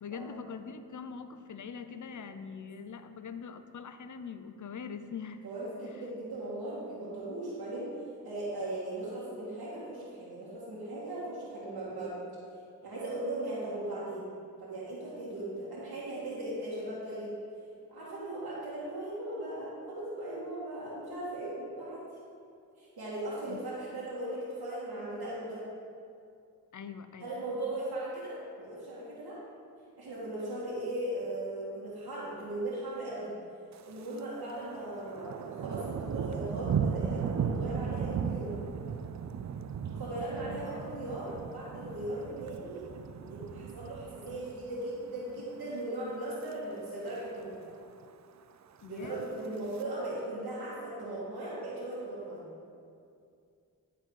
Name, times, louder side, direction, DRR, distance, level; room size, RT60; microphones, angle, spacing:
voice 1, 0.0-5.4 23.5-23.6 26.7-27.3 40.3-40.7 48.8-49.7, left 6 dB, 50° left, 10 dB, 0.6 m, -43 dB
voice 2, 5.4-7.9 8.2-12.1 12.8-14.3 14.6-17.3 17.9-22.0 22.8-25.6 27.2-29.4 30.0-33.3 33.9-38.6 40.0-42.8 43.3-47.6 48.8-52.4, right 1 dB, 70° right, -9 dB, 1.8 m, -38 dB
Thunder, 33.7-34.3 34.6-44.9 45.3-45.6 46.1-46.5 46.8-46.9 47.1-47.2 47.5-48.1 48.9-49.8, right 7 dB, 50° right, 0.4 m, -36 dB
11.0 x 4.0 x 4.6 m, 2.4 s
cardioid pair, 45°, 38 cm